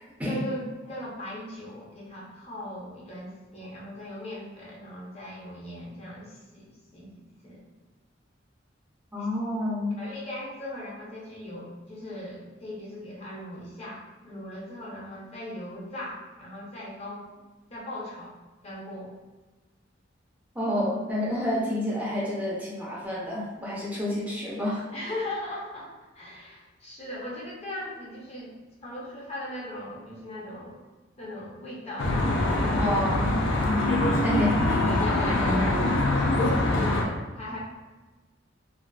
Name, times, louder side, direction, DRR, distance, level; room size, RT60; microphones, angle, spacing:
voice 1, 0.2-7.1 7.4-7.6 9.2-9.3 10.0-17.3 17.7-18.3 18.6-19.1 24.9-25.9 26.1-28.5 28.8-30.8 31.2-33.3 34.8-36.1 36.4-37.6, left 1 dB, 35° left, -5 dB, 0.6 m, -38 dB
voice 2, 9.1-10.0 20.5-24.8 32.8-33.4 34.2-34.9, left 1 dB, 10° right, -7 dB, 0.5 m, -29 dB
Traffic noise roadway noise, 32.0-37.0, left 1 dB, 75° left, 0.4 m, -24 dB
2.4 x 2.4 x 2.2 m, 1.2 s
head